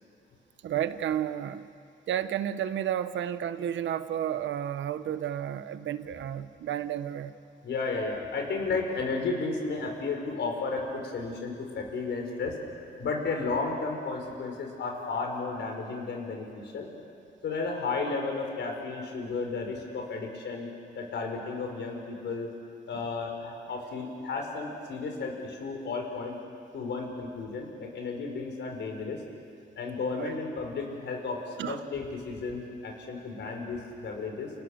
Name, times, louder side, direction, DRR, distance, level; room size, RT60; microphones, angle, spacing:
voice 1, 0.6-1.6 2.1-7.3 30.2-30.3 31.6-31.8, right 10 dB, 80° right, 11 dB, 1.2 m, -31 dB
voice 2, 7.6-12.6 13.0-16.9 17.4-20.7 20.9-22.5 22.9-26.4 26.7-29.2 29.8-34.5, left 4 dB, 70° left, 2 dB, 5.4 m, -33 dB
30.0 x 29.5 x 6.7 m, 2.4 s
cardioid pair, 105°, 19 cm